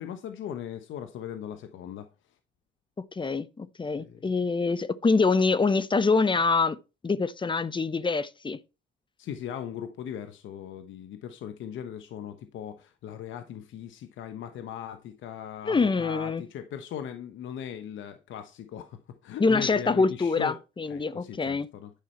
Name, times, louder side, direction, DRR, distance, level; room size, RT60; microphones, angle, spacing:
voice 1, 0.0-2.1 3.9-4.2 9.2-20.6 20.9-21.9, left 9 dB, 75° left, 0.9 m, -39 dB
voice 2, 3.1-6.8 7.0-8.6 15.7-16.4 19.4-21.7, left 4 dB, 25° left, 0.7 m, -25 dB
10.5 x 5.5 x 4.4 m
cardioid pair, 90°, 20 cm